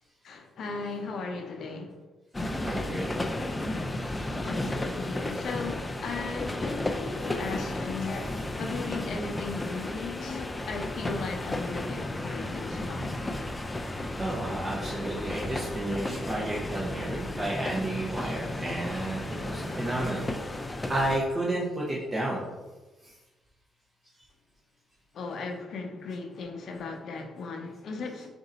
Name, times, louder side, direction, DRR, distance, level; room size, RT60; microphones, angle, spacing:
voice 1, 0.2-2.0 4.2-13.1 25.1-28.3, left 4 dB, 65° left, 0.6 m, -37 dB
sound 1, 2.3-21.2, left 1 dB, 15° left, 0.4 m, -33 dB
voice 2, 2.6-3.1 14.2-20.3 20.9-22.4, right 1 dB, 25° right, 0.7 m, -31 dB
3.8 x 2.6 x 4.1 m
cardioid pair, 90°, 0 cm